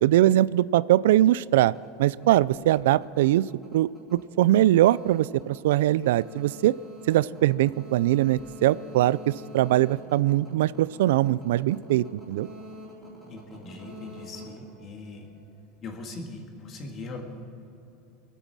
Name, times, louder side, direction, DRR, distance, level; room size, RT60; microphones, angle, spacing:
voice 1, 0.0-1.7 2.0-3.4 3.7-6.7 7.1-12.5, right 14 dB, 90° right, 19 dB, 0.3 m, -22 dB
sound 1, 1.7-15.5, equal, ahead, 3.8 m, -46 dB
voice 2, 13.3-15.3 15.8-17.2, left 3 dB, 25° left, 3 dB, 1.8 m, -40 dB
24.5 x 9.1 x 6.2 m, 2.8 s
supercardioid pair, 175°, 0 cm